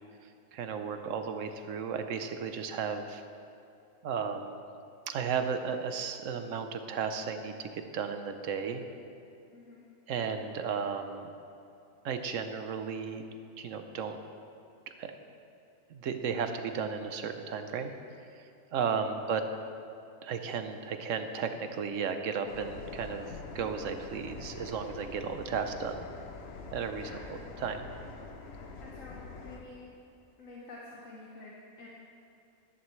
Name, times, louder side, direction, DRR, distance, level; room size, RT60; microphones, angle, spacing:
voice 1, 0.5-3.2 4.0-4.6 5.1-8.8 10.1-11.3 12.0-13.2 13.6-14.2 15.0-15.1 15.9-17.9 18.4-19.4 20.2-23.3 23.5-26.1 26.7-27.9, right 6 dB, 70° right, 7 dB, 1.0 m, -34 dB
voice 2, 9.5-9.9 18.9-19.2 26.9-27.3 28.8-29.9 30.4-31.9, left 3 dB, 70° left, -4 dB, 1.5 m, -49 dB
sound 1, 22.5-29.6, left 4 dB, 55° left, 1.0 m, -45 dB
14.0 x 11.5 x 3.2 m, 2.6 s
omnidirectional pair, 1.4 m